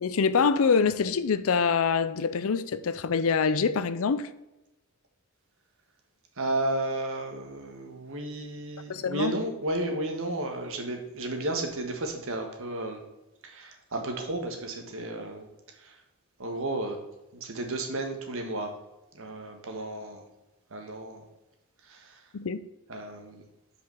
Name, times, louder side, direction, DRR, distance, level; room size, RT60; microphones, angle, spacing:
voice 1, 0.0-4.3 8.9-9.3 22.3-22.7, left 5 dB, 65° left, 0.5 m, -25 dB
voice 2, 6.4-13.0 13.4-15.5 15.8-15.9 16.4-17.0 17.3-18.7 19.1-20.2 20.7-21.3 21.9-22.2 22.9-23.4, right 2 dB, 65° right, 1.5 m, -33 dB
5.8 x 5.0 x 6.3 m
head